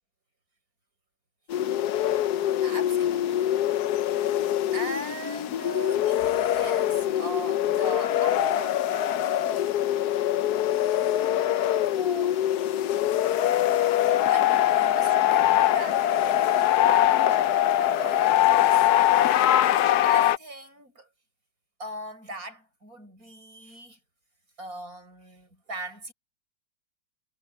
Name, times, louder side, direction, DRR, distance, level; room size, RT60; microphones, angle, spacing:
sound 1, 1.5-20.4, left 12 dB, 65° left, 1.2 m, -23 dB
voice 1, 2.6-3.5 4.1-4.5 4.7-8.9 10.1-10.2 11.8-12.4 13.8-19.3 19.7-21.1 21.8-24.0 24.6-26.1, right 1 dB, 50° right, 8.2 m, -40 dB
omnidirectional pair, 1.9 m